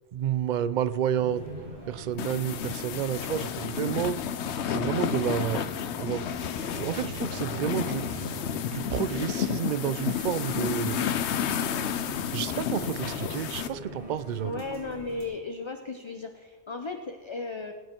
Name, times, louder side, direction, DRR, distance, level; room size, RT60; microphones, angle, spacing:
voice 1, 0.1-1.4 1.9-4.2 4.6-5.6 6.0-6.3 6.7-8.3 8.7-11.2 12.3-14.6, right 9 dB, 55° right, 14 dB, 0.6 m, -30 dB
sound 1, 1.2-15.2, right 1 dB, 40° right, 3.9 m, -43 dB
sound 2, 2.2-13.7, left 9 dB, 70° left, 0.9 m, -31 dB
voice 2, 14.4-17.7, left 3 dB, 30° left, 6 dB, 0.5 m, -36 dB
19.5 x 9.3 x 4.5 m, 1.5 s
omnidirectional pair, 1.2 m